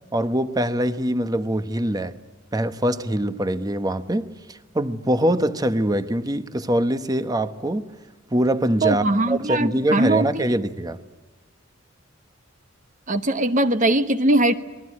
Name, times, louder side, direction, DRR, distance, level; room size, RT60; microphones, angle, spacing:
voice 1, 0.1-2.2 2.5-7.9 8.3-11.0, right 1 dB, 20° right, 1.0 m, -23 dB
voice 2, 8.8-10.6 13.1-14.5, right 1 dB, 40° right, 1.2 m, -21 dB
27.5 x 21.0 x 9.7 m
head